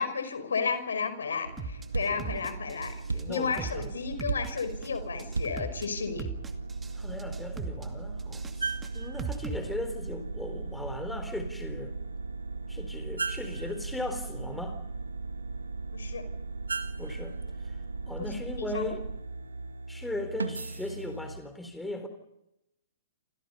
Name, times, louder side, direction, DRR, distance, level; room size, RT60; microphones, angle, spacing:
voice 1, 0.0-3.0 3.3-6.3 15.9-16.2 18.6-18.9, left 5 dB, 75° left, 10 dB, 5.3 m, -32 dB
sound 1, 1.4-21.4, right 3 dB, 90° right, 2.0 m, -37 dB
sound 2, 1.6-1.8 2.2-2.9 3.2-3.8 4.2-4.9 5.2-5.8 6.2-6.9 7.2-7.9 8.2-9.6, right 5 dB, 10° right, 2.4 m, -38 dB
voice 2, 3.0-3.9 6.9-12.0 12.7-14.8 17.0-17.8 18.1-19.0 19.9-22.1, left 2 dB, 5° left, 7 dB, 4.1 m, -38 dB
28.5 x 27.0 x 5.6 m, 0.86 s
hypercardioid pair, 120°, 0 cm